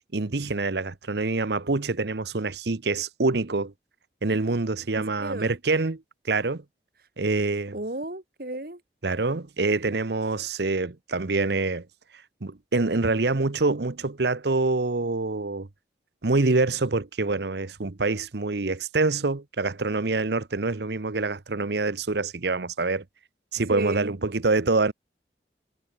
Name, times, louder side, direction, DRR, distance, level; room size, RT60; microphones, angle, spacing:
voice 1, 0.1-3.7 4.2-6.0 6.3-6.6 7.2-7.7 9.0-11.8 12.4-15.7 16.2-23.0 23.5-24.9, right 3 dB, 70° right, 0.9 m, -26 dB
voice 2, 4.9-5.6 7.7-8.8 23.7-24.2, right 1 dB, 55° right, 2.0 m, -33 dB
head